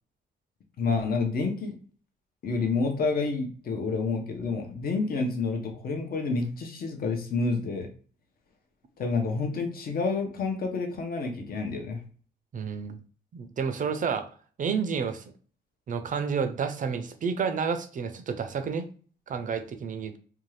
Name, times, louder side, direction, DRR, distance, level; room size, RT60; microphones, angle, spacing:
voice 1, 0.8-1.7 2.4-7.9 9.0-12.0, left 4 dB, 50° left, 3 dB, 0.7 m, -29 dB
voice 2, 12.5-13.0 13.3-14.3 14.6-15.2 15.9-18.8 19.3-20.2, right 6 dB, 40° right, 9 dB, 0.5 m, -30 dB
2.6 x 2.3 x 3.1 m, 0.42 s
cardioid pair, 90°, 20 cm